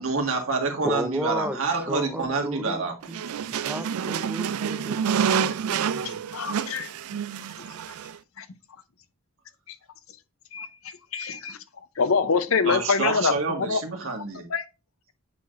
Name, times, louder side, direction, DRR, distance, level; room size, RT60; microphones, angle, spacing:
voice 1, 0.0-2.9 12.6-14.5, right 3 dB, 70° right, 1.8 m, -27 dB
voice 2, 0.8-1.6 1.9-3.2 3.5-6.2, equal, 5° right, 0.6 m, -33 dB
sound 1, 3.0-8.2, right 7 dB, 90° right, 0.4 m, -28 dB
voice 3, 6.3-6.9 8.4-8.5 10.5-10.7 11.1-11.6 12.0-13.3 13.6-13.8 14.5-14.6, left 5 dB, 70° left, 0.7 m, -24 dB
8.2 x 4.8 x 2.5 m
head